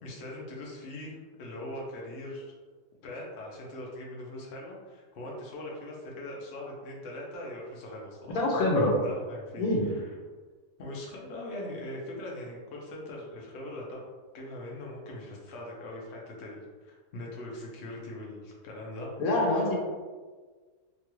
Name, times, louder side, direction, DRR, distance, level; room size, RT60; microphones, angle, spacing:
voice 1, 0.0-2.5 3.0-8.4 9.0-10.2 10.8-14.0 14.3-19.1 19.4-19.7, left 1 dB, 60° left, -3 dB, 0.8 m, -41 dB
voice 2, 8.3-9.0 9.6-9.9 19.2-19.7, left 1 dB, 75° left, -2 dB, 1.1 m, -25 dB
3.0 x 2.3 x 3.0 m, 1.4 s
omnidirectional pair, 1.6 m